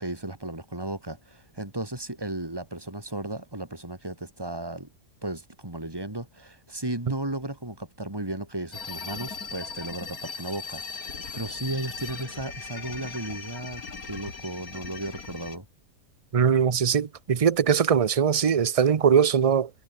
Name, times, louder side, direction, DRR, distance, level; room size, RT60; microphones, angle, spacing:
voice 1, 0.0-4.9 5.2-15.7, right 1 dB, 15° right, 3.8 m, -35 dB
sound 1, 8.7-15.6, left 4 dB, 70° left, 3.1 m, -38 dB
voice 2, 16.3-19.7, right 7 dB, 45° right, 0.4 m, -21 dB
omnidirectional pair, 1.6 m